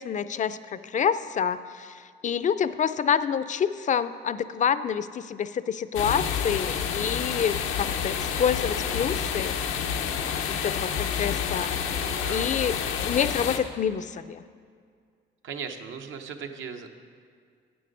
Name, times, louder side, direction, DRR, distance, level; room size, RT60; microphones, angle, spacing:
voice 1, 0.0-9.6 10.5-11.7 12.3-14.4, left 8 dB, 40° left, 13 dB, 0.4 m, -27 dB
sound 1, 5.9-13.6, left 7 dB, 90° left, 0.7 m, -29 dB
voice 2, 11.9-12.5 15.4-16.9, right 6 dB, 75° right, 5 dB, 0.7 m, -38 dB
8.5 x 7.7 x 5.2 m, 2.1 s
cardioid pair, 90°, 20 cm